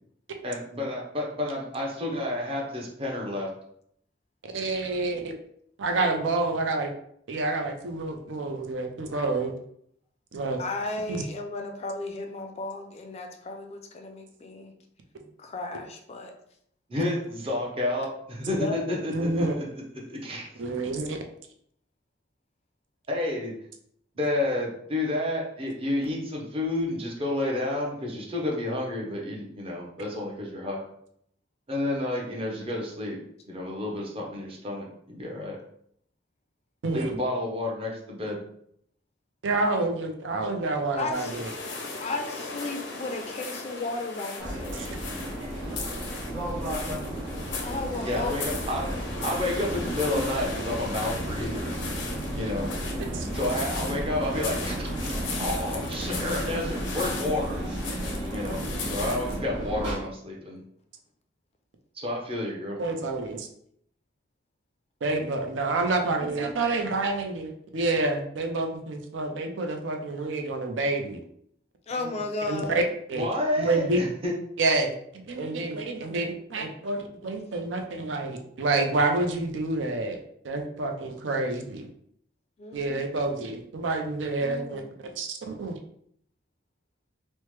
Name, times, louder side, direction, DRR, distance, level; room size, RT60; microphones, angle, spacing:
voice 1, 0.4-3.5 16.9-19.7 20.1-20.5 23.1-23.5 24.2-30.8 31.7-33.2 33.5-35.6 36.9-38.4 48.0-48.9 49.2-51.8 52.3-52.7 53.3-57.6 58.3-58.6 58.9-60.6 61.9-62.8 73.2-74.3, left 1 dB, 30° right, -2 dB, 0.7 m, -30 dB
voice 2, 4.5-5.3 5.8-6.9 7.3-9.5 10.3-10.6 11.1-11.2 19.1-19.5 20.6-21.2 36.8-37.2 39.4-41.5 44.7-44.8 45.6-45.7 51.4-51.5 53.1-53.3 62.8-63.5 65.0-71.2 72.0-72.1 72.5-72.8 73.1-73.3 73.6-74.0 74.6-80.2 80.4-81.9 82.7-84.8 85.1-85.8, right 2 dB, 80° right, 4 dB, 0.5 m, -28 dB
voice 3, 10.6-14.7 15.2-16.3 18.4-18.8 41.0-41.4 42.0-44.9 47.6-48.4 71.9-72.9 82.6-83.0 84.4-84.9, left 2 dB, 35° left, 4 dB, 0.3 m, -34 dB
sound 1, 41.1-59.4, left 4 dB, 90° left, 0.6 m, -38 dB
sound 2, 44.4-60.0, right 1 dB, 65° right, 1.4 m, -33 dB
3.1 x 2.1 x 3.1 m, 0.69 s
head